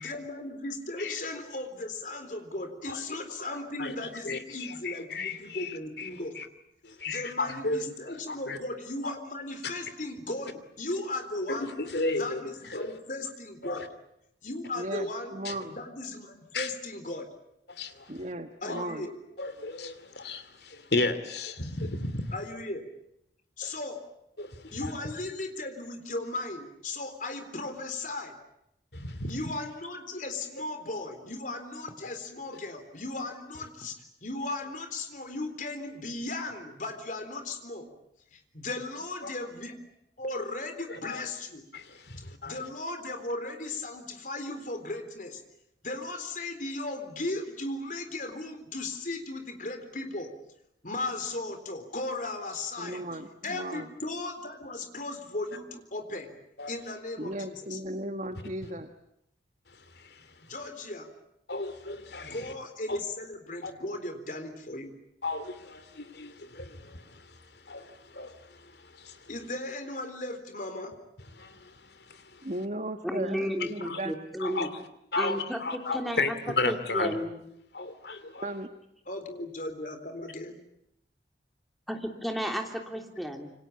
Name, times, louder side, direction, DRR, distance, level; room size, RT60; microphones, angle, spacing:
voice 1, 0.0-6.3 7.1-11.7 12.1-13.8 14.4-15.3 15.7-17.3 18.6-19.1 22.3-22.9 23.6-24.0 24.7-28.3 29.3-37.9 38.3-39.7 40.2-41.6 42.5-45.4 45.8-50.3 50.8-53.0 53.4-56.3 56.7-57.8 60.4-61.1 62.2-64.9 69.3-70.9 79.1-80.5, left 2 dB, 45° left, 3.9 m, -36 dB
voice 2, 3.4-3.9 4.2-6.1 6.3-6.5 6.8-8.6 9.0-9.1 11.6-13.0 13.6-13.9 15.4-15.6 16.5-16.7 17.7-18.1 18.7-18.8 19.4-22.3 23.6-23.7 24.4-24.9 28.9-29.4 40.9-41.2 41.7-42.6 56.6-56.7 59.7-60.5 61.5-62.5 62.9-63.0 63.6-63.7 65.2-69.3 71.4-72.5 73.8-74.0 74.4-74.8 75.1-77.2 77.7-78.5, left 3 dB, 65° left, 2.7 m, -34 dB
voice 3, 14.7-15.8 18.1-19.1 52.8-53.9 57.2-58.9 72.4-74.1 78.4-78.7, right 1 dB, 40° right, 1.4 m, -36 dB
voice 4, 73.0-74.7 75.1-75.6 75.9-76.3 76.6-77.4 81.9-83.5, equal, ahead, 3.2 m, -33 dB
27.5 x 25.0 x 8.6 m
head